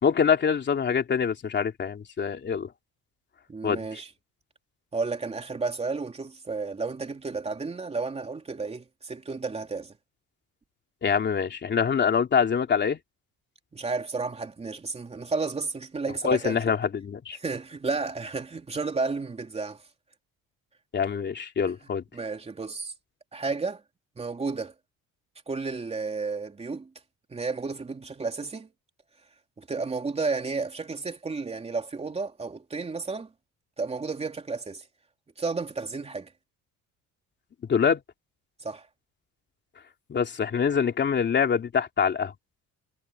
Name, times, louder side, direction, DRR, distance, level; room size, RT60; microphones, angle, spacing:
voice 1, 0.0-2.7 3.6-3.8 11.0-13.0 16.2-17.4 20.9-22.0 37.7-38.0 40.1-42.3, left 6 dB, 35° left, 3.1 m, -25 dB
voice 2, 3.5-4.1 4.9-9.9 13.7-16.6 17.3-19.8 22.1-22.9 23.3-23.8 24.2-24.7 25.5-26.9 27.3-28.7 29.6-33.3 33.8-34.8 35.4-36.3 38.6-38.9, right 4 dB, 20° right, 3.2 m, -32 dB
cardioid pair, 160°, 33 cm